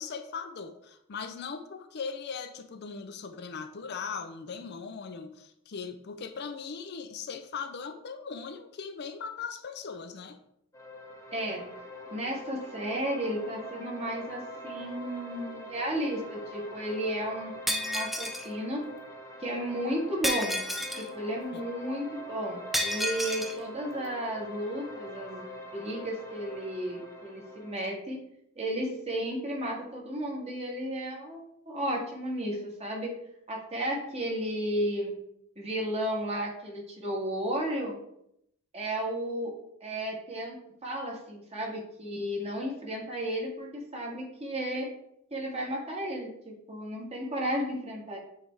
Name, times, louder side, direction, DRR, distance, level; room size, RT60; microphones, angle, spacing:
voice 1, 0.0-10.4 21.5-21.6, left 5 dB, 55° left, 8 dB, 0.5 m, -39 dB
sound 1, 10.7-27.7, left 1 dB, 15° left, 1.1 m, -44 dB
voice 2, 11.3-11.6 12.1-18.8 19.4-20.6 20.9-25.4 25.7-28.2 28.6-33.1 33.5-35.1 35.6-38.0 38.7-39.5 39.8-44.9 45.3-48.2, right 1 dB, 30° right, -2 dB, 1.6 m, -33 dB
Shatter, 17.7-18.5 20.2-21.1 22.7-23.6, left 1 dB, ahead, 0.4 m, -30 dB
8.6 x 3.4 x 3.4 m, 0.75 s
head